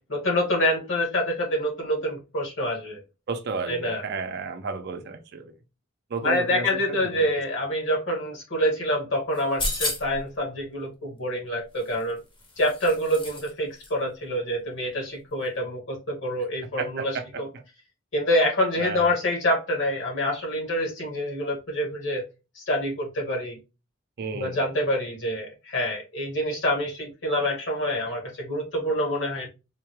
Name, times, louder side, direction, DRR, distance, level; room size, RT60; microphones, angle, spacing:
voice 1, 0.1-3.0 3.7-4.0 6.2-12.2 12.6-17.5 18.1-22.2 22.5-23.6 24.3-29.5, equal, 65° left, 1.5 m, -26 dB
voice 2, 3.3-5.5 6.1-7.3 16.8-17.4 18.8-19.1 24.2-24.6, right 4 dB, 55° right, 0.5 m, -33 dB
sound 1, 9.3-10.3 11.8-13.5 13.8-13.9, left 2 dB, 25° left, 0.7 m, -32 dB
3.7 x 2.2 x 3.0 m
head